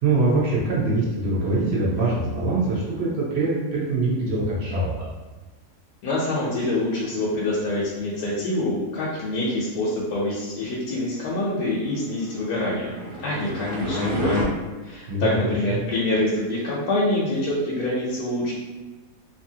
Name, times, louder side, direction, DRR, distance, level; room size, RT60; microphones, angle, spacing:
voice 1, 0.0-5.1 15.1-15.8, right 2 dB, 60° right, -6 dB, 0.7 m, -23 dB
voice 2, 6.0-13.0 13.2-14.6 14.8-18.5, left 1 dB, 90° left, -6 dB, 1.1 m, -26 dB
sound 1, 12.5-14.4, left 1 dB, 5° left, 0.8 m, -28 dB
2.7 x 2.6 x 2.7 m, 1.3 s
omnidirectional pair, 1.6 m